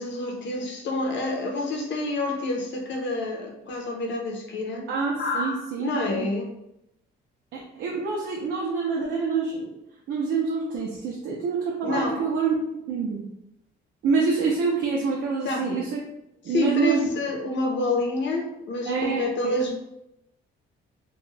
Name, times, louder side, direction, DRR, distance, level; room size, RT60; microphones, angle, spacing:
voice 1, 0.0-4.9 5.2-6.6 11.8-12.3 15.4-15.8 16.5-19.7, left 2 dB, 65° left, 1 dB, 0.7 m, -28 dB
voice 2, 4.9-6.3 7.5-9.7 10.1-13.3 14.0-16.0 16.4-17.1 18.9-19.5, right 4 dB, 70° right, -2 dB, 0.5 m, -26 dB
2.3 x 2.2 x 3.1 m, 0.84 s
cardioid pair, 90°, 20 cm